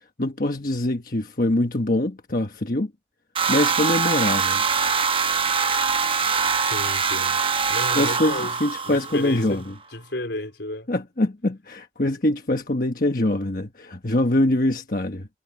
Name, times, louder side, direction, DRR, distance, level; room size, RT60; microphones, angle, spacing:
voice 1, 0.2-2.9 3.5-4.6 7.9-9.6 10.9-15.3, left 1 dB, 50° left, 1.3 m, -24 dB
sound 1, 3.4-9.5, right 5 dB, 30° right, 0.9 m, -23 dB
voice 2, 6.6-7.4 7.7-10.9 13.8-14.0, left 1 dB, 85° left, 4.2 m, -33 dB
head